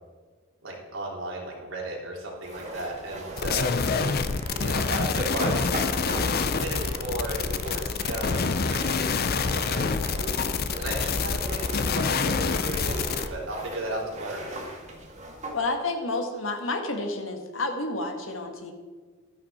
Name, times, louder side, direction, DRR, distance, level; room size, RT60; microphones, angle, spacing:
voice 1, 0.6-3.7 4.6-8.4 8.7-9.0 9.3-10.0 10.8-14.5, right 1 dB, 85° right, -3 dB, 3.4 m, -35 dB
sound 1, 2.4-15.6, right 1 dB, 35° right, 1.9 m, -38 dB
sound 2, 3.4-13.3, left 5 dB, 50° left, 0.6 m, -27 dB
voice 2, 15.5-18.7, left 2 dB, 80° left, 4 dB, 1.7 m, -30 dB
12.5 x 10.5 x 4.3 m, 1.4 s
head